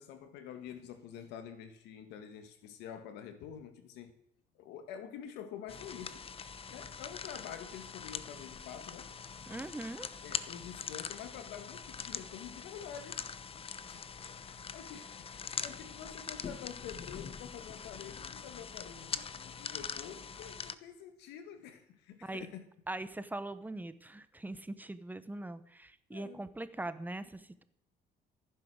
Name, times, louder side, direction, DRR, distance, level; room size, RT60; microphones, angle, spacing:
voice 1, 0.0-4.1 4.6-6.3 6.7-9.1 10.2-13.2 13.9-22.7 26.1-26.5, left 8 dB, 90° left, 1.9 m, -48 dB
sound 1, 5.7-20.8, left 6 dB, 35° left, 0.9 m, -43 dB
voice 2, 9.5-10.1 22.2-22.5 22.9-27.6, right 2 dB, 10° right, 1.0 m, -41 dB
14.5 x 10.0 x 6.4 m
cardioid pair, 110°, 17 cm